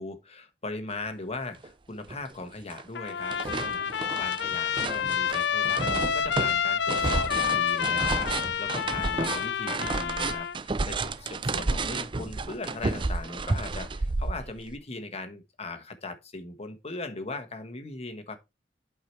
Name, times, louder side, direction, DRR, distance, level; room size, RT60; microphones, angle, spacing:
voice 1, 0.0-18.4, left 2 dB, 35° left, 1.3 m, -39 dB
sound 1, 1.6-1.7 2.1-2.8 3.1-14.8, right 3 dB, 30° right, 0.5 m, -31 dB
Trumpet, 2.9-10.6, left 7 dB, 75° left, 0.5 m, -28 dB
8.5 x 4.8 x 4.5 m
head